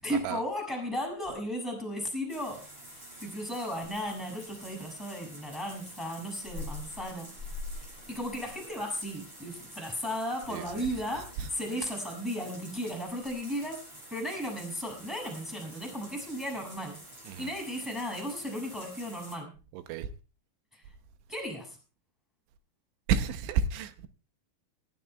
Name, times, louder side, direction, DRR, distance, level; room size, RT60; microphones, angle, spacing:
voice 1, 0.0-2.6 3.2-7.3 8.1-13.8 14.1-17.0 17.4-19.5 20.7-20.8 21.3-21.8, equal, ahead, 6.3 m, -35 dB
sound 1, 2.3-19.4, left 1 dB, 25° right, 8.6 m, -46 dB
voice 2, 10.5-10.9 11.4-11.5 17.3-17.5 19.7-20.1 23.1-24.1, right 7 dB, 90° right, 3.2 m, -31 dB
25.5 x 13.5 x 2.3 m
omnidirectional pair, 5.2 m